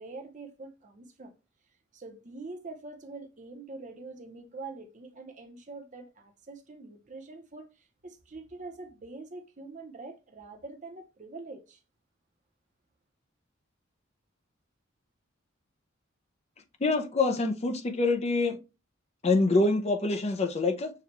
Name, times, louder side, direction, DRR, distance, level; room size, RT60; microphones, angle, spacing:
voice 1, 0.0-1.3 1.9-11.8, right 3 dB, 40° right, 0.7 m, -44 dB
voice 2, 16.8-18.6 19.2-20.9, left 3 dB, 30° left, 0.5 m, -25 dB
6.6 x 2.3 x 3.0 m
head